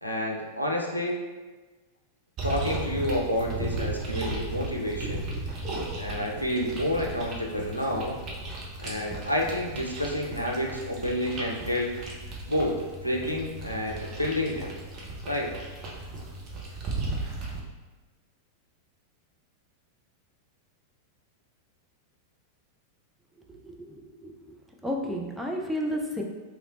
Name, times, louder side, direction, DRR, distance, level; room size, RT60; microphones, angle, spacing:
voice 1, 0.0-1.2 2.4-5.3 6.0-8.2 8.8-11.9 12.5-12.7 13.0-14.7 15.3-15.5, left 1 dB, 90° left, -1 dB, 0.4 m, -29 dB
sound 1, 2.4-17.6, right 2 dB, 35° right, 0.7 m, -36 dB
voice 2, 23.6-24.6 24.8-26.2, equal, 5° right, -1 dB, 0.4 m, -32 dB
3.1 x 2.9 x 2.5 m, 1.3 s
figure-of-eight pair, 90°, 0 cm